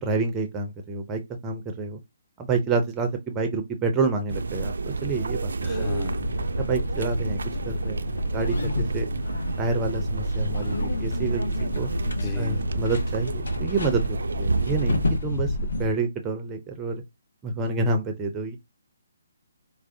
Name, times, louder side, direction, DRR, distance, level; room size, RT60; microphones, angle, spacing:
voice 1, 0.0-2.0 2.4-4.7 5.0-5.9 6.6-7.4 7.7-9.1 9.6-11.4 11.7-11.9 12.4-15.5 15.8-17.0 17.4-18.6, right 3 dB, 15° right, 0.5 m, -28 dB
sound 1, 4.3-15.2, right 4 dB, 70° right, 0.3 m, -30 dB
voice 2, 5.6-6.2 12.0-12.6, left 3 dB, 25° left, 0.8 m, -34 dB
sound 2, 5.7-15.9, left 2 dB, 70° left, 0.7 m, -30 dB
4.5 x 2.0 x 2.6 m
figure-of-eight pair, 140°, 0 cm